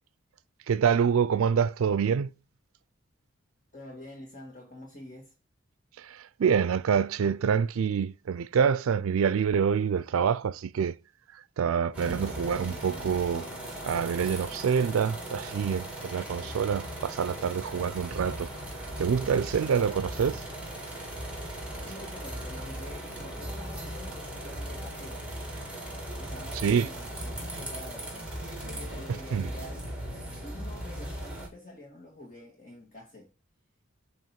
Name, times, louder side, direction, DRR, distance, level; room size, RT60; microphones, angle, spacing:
voice 1, 0.7-2.3 6.0-11.0 11.3-13.5 13.8-18.5 19.0-20.4 26.6-26.9 29.3-29.5, right 7 dB, 80° right, 0.4 m, -26 dB
voice 2, 3.7-5.3 21.8-25.2 26.2-28.3 28.6-29.8 30.4-33.3, left 1 dB, 40° left, 1.7 m, -47 dB
sound 1, 11.9-31.5, right 1 dB, 5° right, 1.6 m, -38 dB
7.5 x 3.0 x 5.8 m
head